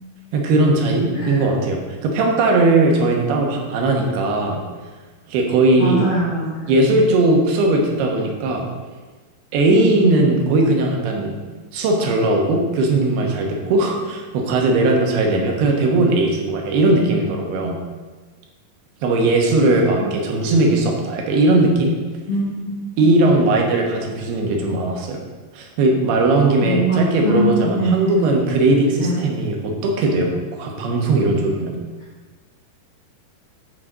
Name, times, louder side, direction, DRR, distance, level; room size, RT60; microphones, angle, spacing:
voice 1, 0.3-4.6 5.3-6.1 6.7-8.7 9.5-11.3 11.7-17.8 19.0-21.9 23.0-25.2 25.5-31.8, right 2 dB, 75° right, 1 dB, 3.1 m, -18 dB
voice 2, 1.1-1.4 5.8-7.0 9.7-10.3 22.3-23.1 26.6-27.9 29.0-29.3, right 1 dB, 70° left, -6 dB, 1.4 m, -22 dB
8.6 x 4.9 x 6.4 m, 1.3 s
omnidirectional pair, 4.8 m